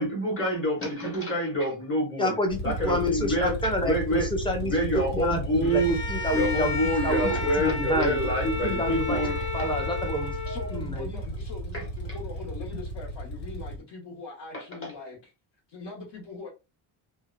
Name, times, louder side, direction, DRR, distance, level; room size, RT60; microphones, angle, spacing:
voice 1, 0.0-2.3 2.6-3.5 3.8-4.3 4.6-6.0 6.3-9.7 10.5-10.7 11.7-11.8 14.8-14.9, right 1 dB, 25° left, 1.1 m, -27 dB
voice 2, 2.2-6.8 7.0-7.3 7.6-8.2 8.4-9.3 9.5-10.4 10.7-11.1, left 1 dB, 10° left, 0.5 m, -28 dB
sound 1, 2.5-13.8, right 1 dB, 80° left, 1.5 m, -34 dB
Bowed string instrument, 5.6-10.9, left 3 dB, 50° left, 0.7 m, -33 dB
voice 3, 10.5-15.3 15.7-16.5, left 4 dB, 65° left, 1.2 m, -41 dB
2.8 x 2.2 x 2.5 m
cardioid pair, 145°, 48 cm